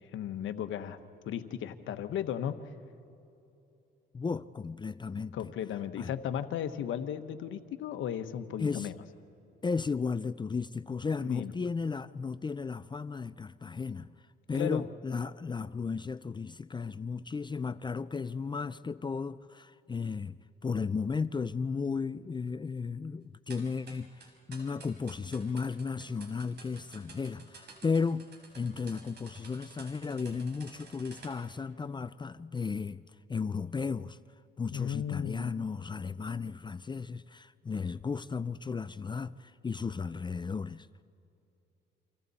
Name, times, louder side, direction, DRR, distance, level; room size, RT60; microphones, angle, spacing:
voice 1, 0.1-1.0 1.2-2.6 5.3-9.0 11.2-11.5 14.5-14.8 34.7-35.5, left 9 dB, 80° left, 1.2 m, -35 dB
voice 2, 4.1-5.5 6.0-6.1 8.6-8.9 9.6-14.2 14.5-20.4 20.6-28.3 28.6-33.0 33.3-34.2 34.6-40.9, left 5 dB, 25° left, 0.5 m, -34 dB
sound 1, 23.5-31.3, right 4 dB, 55° right, 4.8 m, -52 dB
29.5 x 25.5 x 4.2 m
cardioid pair, 90°, 20 cm